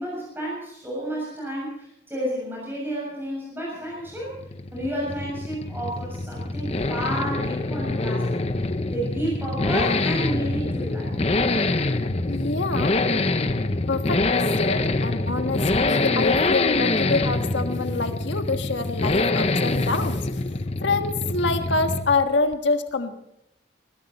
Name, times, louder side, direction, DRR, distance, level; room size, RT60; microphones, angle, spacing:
voice 1, 0.0-4.3 4.7-11.2, equal, 10° right, -4 dB, 6.9 m, -31 dB
Accelerating revving vroom, 4.1-22.3 22.5-22.6, left 2 dB, 35° left, 0.7 m, -25 dB
voice 2, 12.3-13.0 13.9-20.4 20.8-23.2, left 3 dB, 85° left, 6 dB, 1.5 m, -26 dB
21.0 x 15.0 x 4.2 m, 0.80 s
head